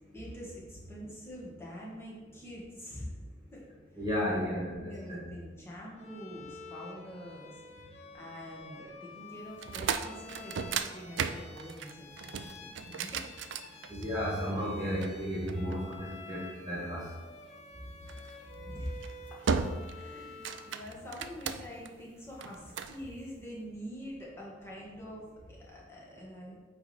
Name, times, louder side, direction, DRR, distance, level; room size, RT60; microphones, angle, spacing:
voice 1, 0.1-3.1 3.5-3.7 4.3-7.6 8.1-13.3 15.7-15.9 18.7-19.5 19.9-26.5, equal, 15° left, -5 dB, 1.5 m, -45 dB
voice 2, 4.0-5.3 13.9-17.1, equal, 20° right, -8 dB, 1.8 m, -33 dB
Bowed string instrument, 6.0-20.8, left 3 dB, 35° left, 0.8 m, -50 dB
sound 1, 9.5-14.3 15.0-16.3 18.1-18.4 18.9-19.1 19.5-20.0 20.3-21.9 22.4-23.0, right 6 dB, 85° right, 0.4 m, -35 dB
8.5 x 3.4 x 4.3 m, 1.3 s
head